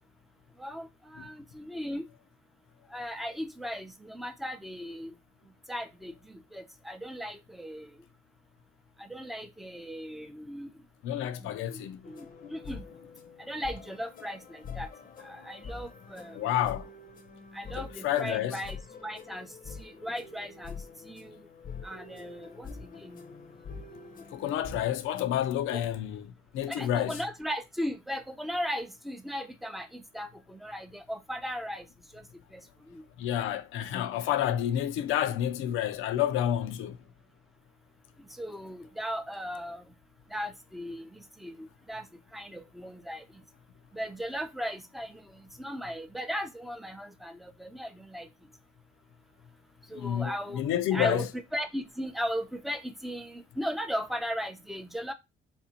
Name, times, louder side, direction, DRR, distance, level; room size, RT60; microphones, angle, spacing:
voice 1, 0.6-2.1 2.9-5.1 5.7-8.0 9.0-10.8 11.4-12.9 13.4-14.9 15.2-16.5 17.5-20.8 21.0-21.4 21.8-23.2 25.7-25.8 26.7-31.9 32.1-32.2 32.5-33.0 38.2-39.9 40.3-42.1 42.3-43.2 43.9-48.3 49.9-55.1, equal, ahead, 0.5 m, -37 dB
voice 2, 11.0-12.0 16.3-16.9 17.8-18.6 24.3-27.2 33.2-37.0 50.0-51.3, left 11 dB, 90° left, 0.5 m, -29 dB
sound 1, 12.0-25.2, left 5 dB, 45° left, 0.6 m, -45 dB
3.5 x 2.6 x 2.8 m
cardioid pair, 90°, 20 cm